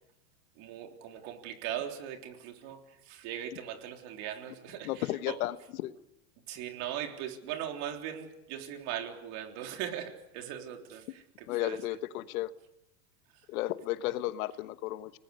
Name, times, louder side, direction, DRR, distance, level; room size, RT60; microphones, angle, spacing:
voice 1, 0.6-5.4 6.5-12.0, right 10 dB, 50° right, 4 dB, 3.7 m, -39 dB
voice 2, 4.8-5.6 5.8-5.9 11.5-12.5 13.5-15.1, left 15 dB, 70° left, 12 dB, 1.3 m, -33 dB
30.0 x 19.5 x 6.6 m, 0.87 s
supercardioid pair, 135°, 45 cm